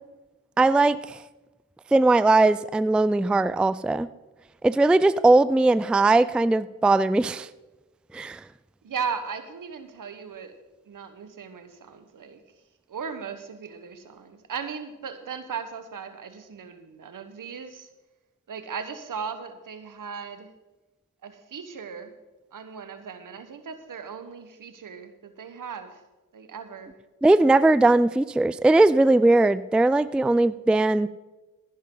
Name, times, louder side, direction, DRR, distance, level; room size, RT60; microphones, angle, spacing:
voice 1, 0.6-1.2 1.9-4.1 4.6-7.5 8.1-8.4 27.2-31.1, right 2 dB, 5° right, 16 dB, 0.3 m, -19 dB
voice 2, 8.8-10.5 10.8-12.4 12.9-17.9 18.5-20.5 21.2-22.1 22.5-26.0 26.3-27.0, right 6 dB, 70° right, 9 dB, 1.3 m, -37 dB
15.5 x 10.5 x 3.9 m, 1.1 s
cardioid pair, 55°, 33 cm